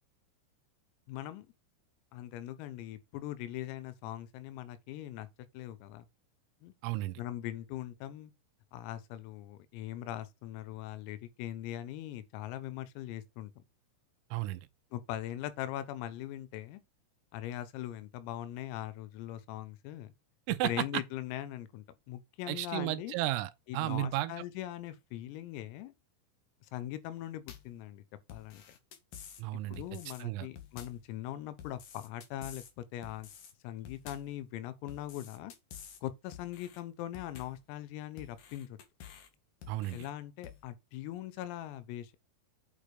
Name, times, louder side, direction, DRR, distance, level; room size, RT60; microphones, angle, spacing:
voice 1, 1.1-1.5 2.1-5.3 5.5-6.1 6.6-6.7 7.2-8.3 8.7-13.6 14.9-16.8 17.3-20.1 20.6-23.2 23.7-25.9 26.7-28.0 28.3-28.6 29.7-33.3 33.6-35.5 36.0-38.8 39.9-42.2, left 13 dB, 85° left, 3.8 m, -41 dB
voice 2, 6.8-7.2 14.3-14.7 20.5-20.7 22.5-24.3 29.4-29.8 30.2-30.5 39.7-40.1, right 16 dB, 85° right, 3.4 m, -33 dB
sound 1, 27.5-27.8 28.3-29.4 29.7-30.2 30.6-31.1 31.6-32.7 33.0-33.5 33.8-34.4 34.9-36.0 36.3-36.8 37.1-37.7 38.2-39.3 39.6-40.1 40.4-40.6, left 9 dB, 65° left, 2.0 m, -50 dB
8.9 x 5.1 x 4.9 m
omnidirectional pair, 6.0 m